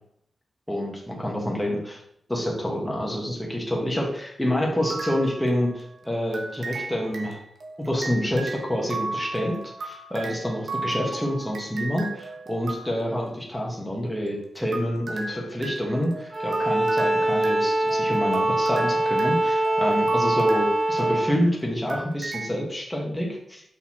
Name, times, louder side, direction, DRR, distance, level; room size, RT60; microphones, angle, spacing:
voice 1, 0.7-2.0 2.3-7.4 7.8-23.6, equal, 5° left, -2 dB, 1.5 m, -27 dB
sound 1, 4.8-5.9 6.3-13.3 14.3-21.5 21.9-22.5, right 3 dB, 80° right, 0.9 m, -35 dB
Bowed string instrument, 16.3-21.4, right 1 dB, 25° right, 0.8 m, -23 dB
6.3 x 5.4 x 2.9 m, 0.70 s
wide cardioid pair, 115°, 0 cm